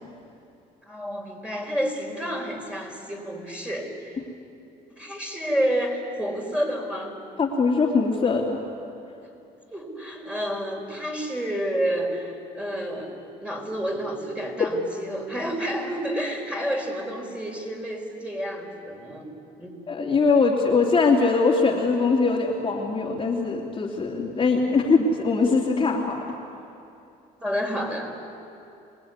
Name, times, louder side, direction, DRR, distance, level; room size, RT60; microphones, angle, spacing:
voice 1, 0.9-4.2 4.9-7.2 9.2-9.3 9.7-19.3 19.6-19.7 24.6-24.8 27.4-28.1, equal, 5° right, 1 dB, 4.9 m, -30 dB
voice 2, 7.4-8.6 14.6-14.7 19.9-26.2, left 4 dB, 30° left, -2 dB, 2.9 m, -22 dB
27.0 x 20.0 x 9.7 m, 2.7 s
cardioid pair, 110°, 17 cm